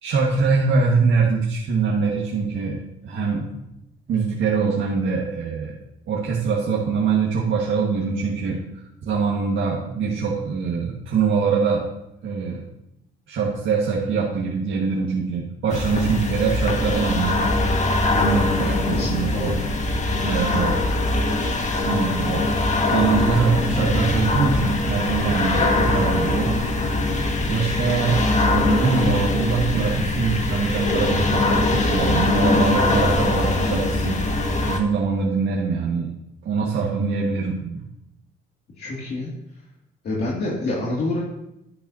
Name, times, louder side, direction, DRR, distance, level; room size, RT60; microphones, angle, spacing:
voice 1, 0.0-3.6 4.1-5.8 6.1-11.8 12.2-12.6 13.3-17.4 18.2-19.6 20.2-20.7 21.8-22.4 22.9-26.5 27.5-34.2 34.7-36.1 36.5-37.8, right 5 dB, 70° right, -3 dB, 1.7 m, -23 dB
sound 1, 15.7-34.8, left 2 dB, 35° left, 1.7 m, -22 dB
voice 2, 18.1-19.6 19.9-20.3 38.8-39.3 40.0-41.2, left 2 dB, 55° left, -5 dB, 2.5 m, -28 dB
11.0 x 10.5 x 2.8 m, 0.86 s
cardioid pair, 90°, 20 cm